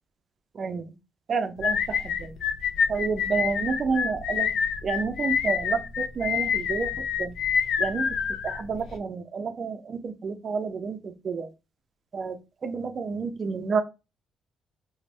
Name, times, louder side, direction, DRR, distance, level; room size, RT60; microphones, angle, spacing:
voice 1, 0.6-0.9 1.3-1.8 2.2-2.3 2.9-4.5 4.8-6.9 7.2-7.3 7.8-8.1 8.4-11.5 12.1-12.4 12.6-13.8, right 5 dB, 45° right, 9 dB, 0.4 m, -29 dB
sound 1, 1.6-9.0, left 7 dB, 75° left, 0.3 m, -27 dB
2.6 x 2.0 x 3.1 m, 0.28 s
cardioid pair, 90°, 0 cm